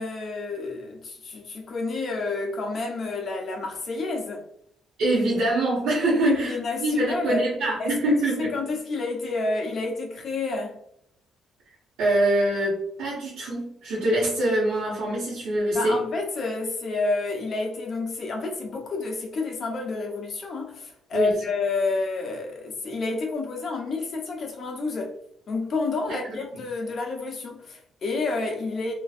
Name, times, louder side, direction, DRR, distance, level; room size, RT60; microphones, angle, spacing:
voice 1, 0.0-4.4 6.2-7.4 7.8-10.8 15.7-25.1 25.5-28.9, left 3 dB, 55° left, 0.8 m, -29 dB
voice 2, 5.0-8.5 12.0-16.0 21.1-21.3 26.1-26.2, right 1 dB, 85° right, 1.1 m, -24 dB
3.0 x 2.5 x 2.4 m
cardioid pair, 90°, 0 cm